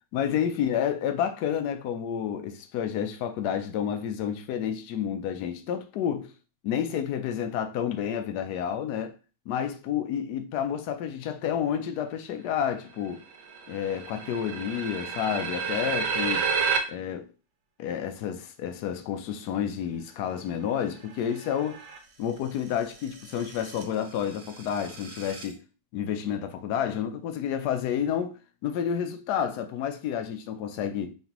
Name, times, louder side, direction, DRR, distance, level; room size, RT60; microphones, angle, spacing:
voice 1, 0.1-6.3 6.6-9.1 9.5-13.2 13.7-16.5 16.9-17.3 17.8-21.8 22.2-25.6 25.9-31.1, left 9 dB, 75° left, 0.9 m, -30 dB
sound 1, 12.8-12.9 13.0-16.8 21.0-22.0 22.8-25.5, right 6 dB, 65° right, 1.4 m, -32 dB
4.2 x 3.2 x 2.9 m
omnidirectional pair, 2.1 m